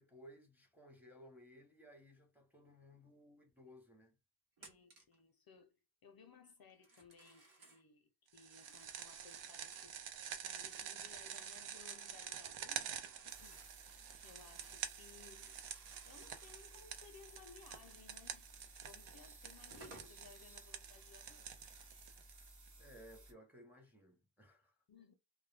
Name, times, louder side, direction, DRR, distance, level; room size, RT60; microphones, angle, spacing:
voice 1, 0.0-4.2 22.8-24.7, equal, 5° right, 0.6 m, -60 dB
voice 2, 4.6-5.8 6.0-13.6 14.2-15.6 16.1-18.5 18.8-21.5 24.9-25.1, left 5 dB, 50° left, 0.5 m, -61 dB
Telephone, 4.6-5.2 6.7-7.8 8.4-9.9 10.3-14.8 15.1-16.6 18.7-18.8 19.4-20.2, right 2 dB, 70° right, 0.9 m, -62 dB
sound 1, 8.4-22.7, right 8 dB, 90° right, 0.6 m, -48 dB
sound 2, 13.3-23.3, right 2 dB, 40° right, 0.7 m, -59 dB
2.1 x 2.1 x 3.1 m
wide cardioid pair, 115°, 48 cm